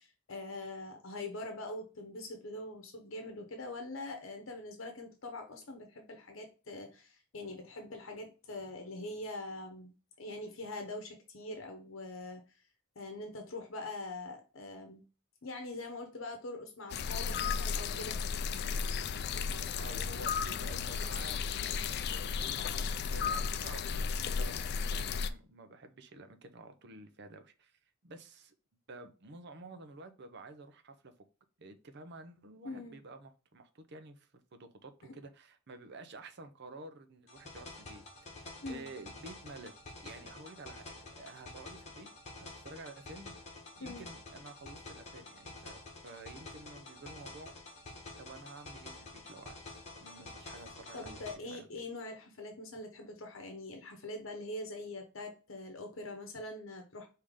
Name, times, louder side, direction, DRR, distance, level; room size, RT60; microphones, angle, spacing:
voice 1, 0.0-9.9 10.2-12.6 13.0-15.0 15.4-18.2 32.6-33.0 35.0-35.1 38.6-38.9 43.8-44.0 50.2-50.3 50.9-57.1, left 2 dB, 70° left, 0.9 m, -43 dB
sound 1, 16.9-25.3, left 6 dB, 55° left, 0.3 m, -34 dB
voice 2, 19.5-22.6 23.1-27.7 28.0-28.5 28.9-31.1 31.6-38.0 38.3-42.1 42.4-47.5 48.2-49.6 50.0-51.7, right 2 dB, 55° right, 0.7 m, -51 dB
sound 2, 37.3-51.3, left 2 dB, 35° left, 1.3 m, -49 dB
4.9 x 2.8 x 3.6 m
head